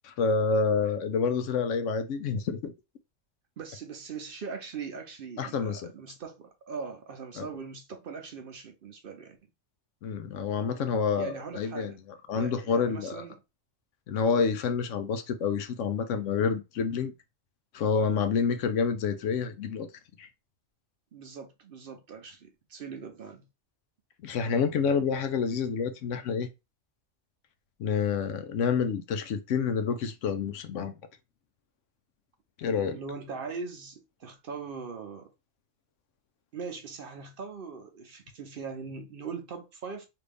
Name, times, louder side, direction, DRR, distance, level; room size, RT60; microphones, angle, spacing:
voice 1, 0.0-2.7 5.4-5.9 7.4-7.5 10.0-11.9 12.3-13.2 14.1-17.1 17.7-19.9 20.2-20.3 24.2-26.5 27.8-30.9 32.6-33.0, left 5 dB, 80° left, 1.0 m, -28 dB
voice 2, 3.6-9.4 11.2-12.0 12.3-13.4 21.1-23.5 32.9-35.3 36.5-40.1, right 5 dB, 55° right, 0.7 m, -40 dB
3.3 x 2.5 x 3.3 m
omnidirectional pair, 1.3 m